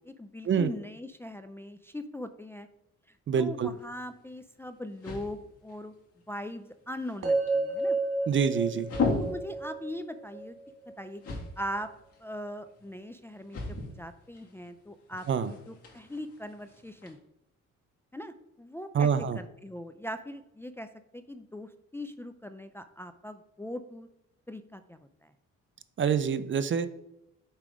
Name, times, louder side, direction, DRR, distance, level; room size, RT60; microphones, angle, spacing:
voice 1, 0.0-2.7 3.4-5.9 6.3-8.0 9.2-10.6 11.0-11.9 12.2-17.2 18.1-19.1 19.3-20.9 21.1-24.1 24.5-25.3, equal, 10° left, 8 dB, 0.4 m, -40 dB
voice 2, 3.3-3.7 8.3-8.9 15.3-15.5 18.9-19.4 26.0-26.9, right 7 dB, 40° right, 13 dB, 0.5 m, -26 dB
sound 1, 3.7-17.1, left 4 dB, 50° left, 2.4 m, -39 dB
sound 2, 7.2-11.3, right 2 dB, 80° right, 1.8 m, -31 dB
5.7 x 4.7 x 5.0 m, 0.89 s
cardioid pair, 90°, 30 cm